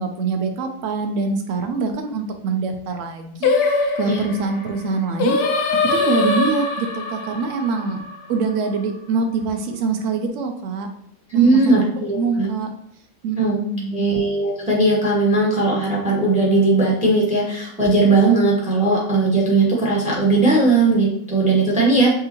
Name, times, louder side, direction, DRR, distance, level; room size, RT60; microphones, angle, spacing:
voice 1, 0.0-3.5 4.0-5.4 5.9-8.0 8.3-10.9 11.3-12.7 13.2-14.0, right 4 dB, 75° right, 5 dB, 0.7 m, -24 dB
Singing, 3.4-8.7, left 3 dB, 70° left, 1.0 m, -22 dB
voice 2, 11.3-12.5 13.4-13.6 13.9-22.1, right 3 dB, 5° right, -4 dB, 0.6 m, -18 dB
4.8 x 2.8 x 2.9 m, 0.70 s
omnidirectional pair, 1.9 m